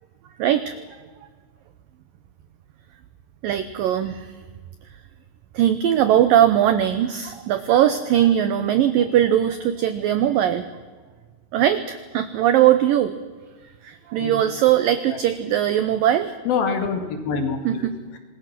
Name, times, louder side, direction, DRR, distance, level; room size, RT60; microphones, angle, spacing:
voice 1, 0.4-0.8 3.4-4.3 5.5-10.7 11.5-13.1 13.8-16.3 17.7-17.9, right 11 dB, 85° right, 11 dB, 2.0 m, -20 dB
voice 2, 16.5-18.2, left 5 dB, 60° left, 6 dB, 3.7 m, -26 dB
26.5 x 20.0 x 6.1 m, 1.4 s
omnidirectional pair, 5.2 m